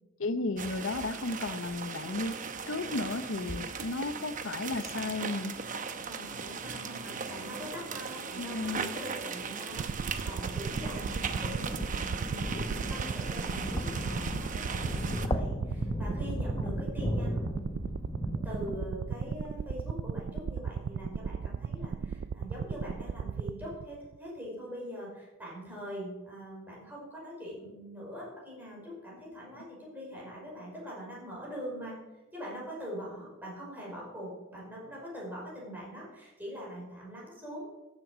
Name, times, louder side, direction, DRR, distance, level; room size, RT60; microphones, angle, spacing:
voice 1, 0.2-2.4 2.7-5.6 8.4-8.9, left 3 dB, 75° left, 0.8 m, -34 dB
sound 1, 0.6-15.3, right 5 dB, 40° right, 0.9 m, -38 dB
voice 2, 6.1-11.9 12.2-17.5 18.4-32.0 32.3-37.8, equal, 10° right, 5.5 m, -43 dB
sound 2, 9.8-24.2, right 6 dB, 60° right, 0.3 m, -36 dB
sound 3, 10.4-19.6, left 1 dB, 20° left, 0.8 m, -36 dB
14.0 x 7.8 x 6.4 m
head